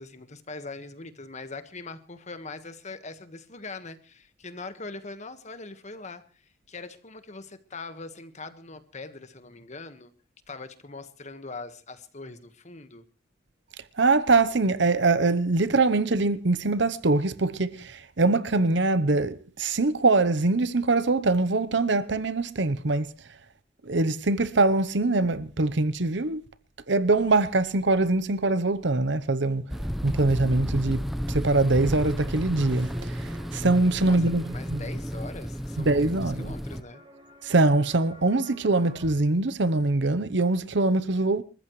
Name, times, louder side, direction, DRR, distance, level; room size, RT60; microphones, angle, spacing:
voice 1, 0.0-10.1 10.5-13.0 34.0-37.0, left 3 dB, 40° left, 1.5 m, -42 dB
voice 2, 14.0-23.1 23.8-26.4 26.9-29.6 30.0-34.8 35.8-36.5 37.4-41.4, right 2 dB, 65° right, 0.9 m, -23 dB
sound 1, 29.7-36.8, equal, ahead, 0.8 m, -32 dB
sound 2, 31.9-39.1, right 1 dB, 30° right, 2.9 m, -52 dB
28.5 x 14.0 x 3.2 m
head